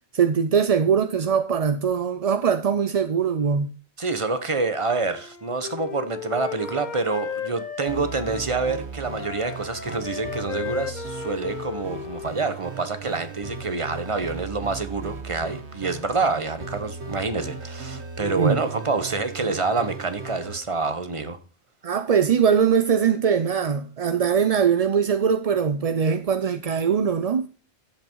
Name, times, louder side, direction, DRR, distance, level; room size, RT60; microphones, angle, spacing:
voice 1, 0.1-3.7 18.4-18.6 21.8-27.5, right 7 dB, 45° right, 0.5 m, -21 dB
voice 2, 4.0-21.4, right 3 dB, 30° right, 1.0 m, -27 dB
Wind instrument woodwind instrument, 5.1-8.8 9.1-12.7, left 7 dB, 45° left, 0.9 m, -35 dB
sound 1, 7.9-20.6, right 4 dB, 80° right, 1.5 m, -37 dB
10.5 x 7.9 x 4.6 m
omnidirectional pair, 1.1 m